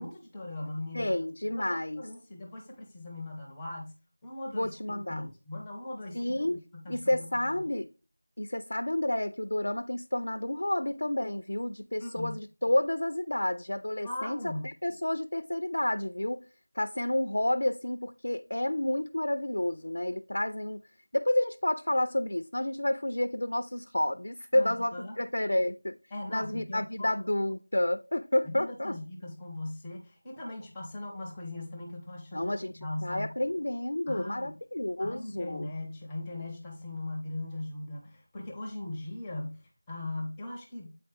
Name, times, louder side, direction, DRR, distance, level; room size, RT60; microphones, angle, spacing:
voice 1, 0.0-1.1 1.6-3.9 4.2-7.3 7.6-7.7 12.0-12.3 14.0-14.7 24.5-25.2 26.1-27.1 28.5-33.3 34.1-34.5 35.0-41.0, left 2 dB, 10° left, 0.6 m, -39 dB
voice 2, 0.9-2.0 4.5-5.3 6.1-6.6 6.9-7.9 8.4-16.4 16.8-20.8 21.1-26.0 26.3-29.0 32.3-32.7 33.0-35.7, left 1 dB, 50° left, 0.4 m, -30 dB
8.4 x 4.2 x 3.2 m
figure-of-eight pair, 175°, 0 cm